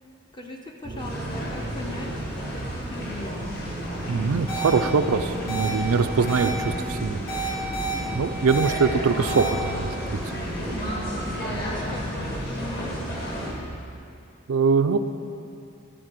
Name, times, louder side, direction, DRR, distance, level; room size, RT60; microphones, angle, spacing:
voice 1, 0.3-2.1 2.4-3.5 10.7-11.1 11.4-13.6, left 1 dB, 20° left, 1 dB, 0.6 m, -39 dB
sound 1, 0.8-14.3, right 2 dB, 30° right, 0.4 m, -36 dB
sound 2, 1.0-13.5, equal, 50° left, 2.1 m, -33 dB
voice 2, 4.1-7.2 8.1-10.4 11.5-11.6 14.5-15.0, right 5 dB, 85° right, 7 dB, 0.4 m, -23 dB
sound 3, 4.5-4.7 5.5-5.7 6.3-6.5 7.3-7.9 8.5-8.7 9.3-9.5, right 4 dB, 85° left, 2.7 m, -30 dB
12.5 x 4.3 x 7.5 m, 2.6 s
head